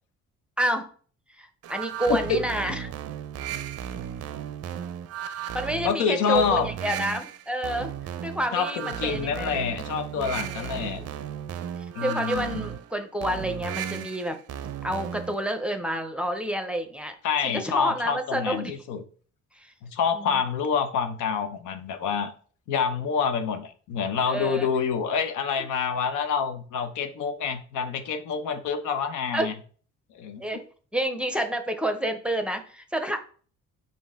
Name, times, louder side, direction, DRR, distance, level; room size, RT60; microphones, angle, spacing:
voice 1, 0.6-0.9 1.4-2.9 5.5-7.9 8.2-9.5 10.1-11.1 12.0-14.4 14.8-17.2 17.4-18.7 19.5-19.7 20.1-20.3 24.3-24.7 29.3-29.5 30.4-30.6 30.9-33.2, right 1 dB, 5° right, 6 dB, 0.6 m, -29 dB
sound 1, 1.6-15.4, right 9 dB, 55° right, 0.4 m, -35 dB
voice 2, 5.8-6.7 8.5-11.0 11.9-12.7 17.2-19.0 19.8-22.3 22.7-29.5 30.1-30.4, left 6 dB, 85° left, 8 dB, 0.7 m, -27 dB
5.3 x 2.7 x 3.5 m, 0.43 s
cardioid pair, 90°, 30 cm